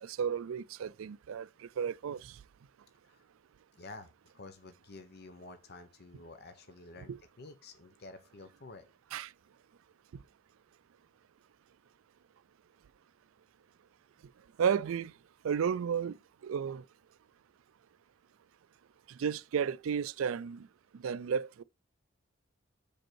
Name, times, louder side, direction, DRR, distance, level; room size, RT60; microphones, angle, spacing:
voice 1, 0.0-2.3 7.1-7.2 9.1-9.3 14.6-15.1 15.4-16.1 16.4-16.8 19.2-20.7 21.0-21.6, right 7 dB, 80° right, 0.4 m, -33 dB
voice 2, 3.8-4.1 4.3-7.1 7.4-8.8, left 3 dB, 50° left, 0.9 m, -50 dB
6.5 x 5.2 x 4.5 m
head